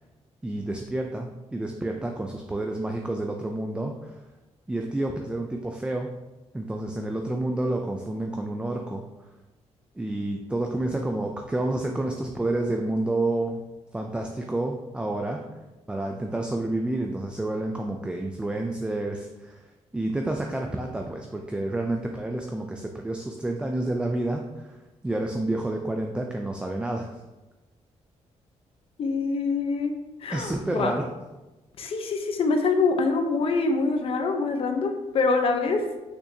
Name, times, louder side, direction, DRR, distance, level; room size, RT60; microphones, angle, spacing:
voice 1, 0.4-4.2 4.7-6.1 6.5-9.0 10.0-13.6 13.9-15.4 15.9-19.7 19.9-27.2 30.3-31.1, right 2 dB, 10° right, 2 dB, 0.4 m, -29 dB
voice 2, 29.0-29.9 30.2-30.9 31.8-35.8, left 4 dB, 55° left, 5 dB, 0.8 m, -25 dB
6.3 x 6.0 x 2.8 m, 1.1 s
wide cardioid pair, 155°, 12 cm